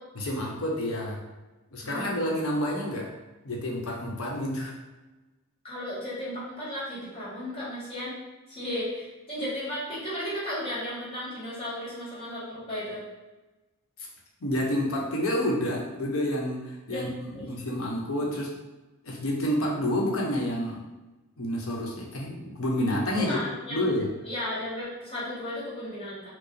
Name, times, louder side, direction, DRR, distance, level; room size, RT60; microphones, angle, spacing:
voice 1, 0.2-1.2 1.7-3.1 3.4-4.8 14.4-18.5 19.0-20.8 21.4-23.4 23.7-24.1, left 1 dB, 70° left, -2 dB, 0.8 m, -29 dB
voice 2, 1.8-2.1 5.6-8.2 8.5-13.0 16.9-17.1 17.3-17.4 23.1-23.9 24.2-26.3, left 1 dB, 25° left, -8 dB, 1.4 m, -34 dB
4.6 x 2.0 x 3.1 m, 1.1 s
head